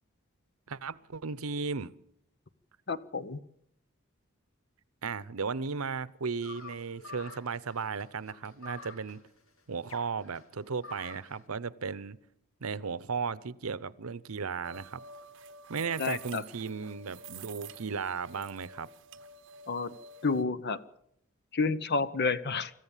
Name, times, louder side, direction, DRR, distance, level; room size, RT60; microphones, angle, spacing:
voice 1, 0.7-1.9 5.0-9.2 9.7-12.2 12.6-15.0 15.7-18.9, right 5 dB, 85° right, 18 dB, 0.8 m, -35 dB
voice 2, 2.9-3.4 16.0-16.4 19.7-19.9 20.2-20.8 21.5-22.7, left 4 dB, 50° left, 14 dB, 1.0 m, -30 dB
sound 1, 6.4-11.4, left 4 dB, 75° left, 2.7 m, -49 dB
sound 2, 14.6-20.4, right 4 dB, 60° right, 1.1 m, -49 dB
25.5 x 14.0 x 7.3 m, 0.75 s
head